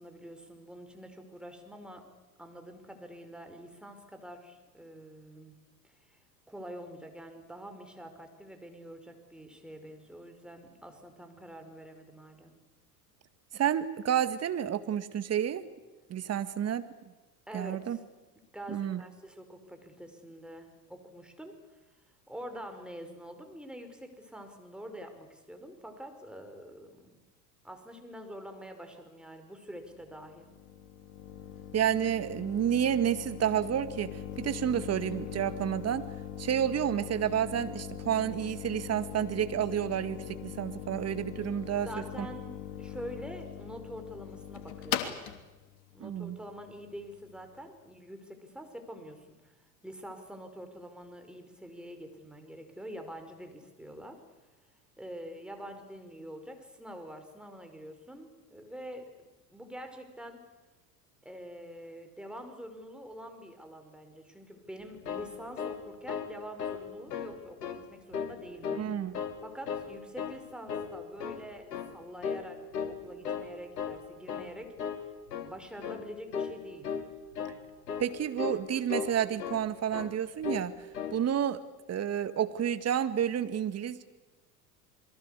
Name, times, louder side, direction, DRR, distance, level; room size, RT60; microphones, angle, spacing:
voice 1, 0.0-2.1 2.4-6.2 6.5-12.6 17.5-18.0 18.5-21.8 22.3-27.2 27.6-30.5 41.8-45.3 45.9-49.5 49.8-54.2 55.0-59.1 59.5-60.5 61.2-68.8 69.4-76.9, equal, ahead, 6 dB, 5.3 m, -46 dB
voice 2, 13.5-15.6 16.1-16.8 17.5-18.0 18.7-19.0 31.7-36.0 36.4-41.9 42.2-42.3 46.0-46.4 68.7-69.2 78.0-80.7 81.1-81.6 81.9-84.0, right 9 dB, 30° right, 11 dB, 2.1 m, -30 dB
sound 1, 29.8-47.4, left 10 dB, 55° left, 3.2 m, -41 dB
sound 2, 64.8-66.3 66.6-66.8 67.1-67.8 68.1-68.9 69.1-69.9 70.2-70.4 70.7-71.5 71.7-72.0 72.2-72.5 72.7-73.5 73.7-74.0 74.3-74.5 74.8-75.0 75.3-75.5 75.8-76.0 76.3-76.6 76.8-77.1 77.3-77.6 77.9-78.1 78.4-78.6 78.9-79.7 79.9-80.1 80.4-80.7 80.9-81.2, left 7 dB, 75° left, 3.1 m, -36 dB
28.0 x 22.5 x 8.5 m, 1.2 s
figure-of-eight pair, 80°, 49 cm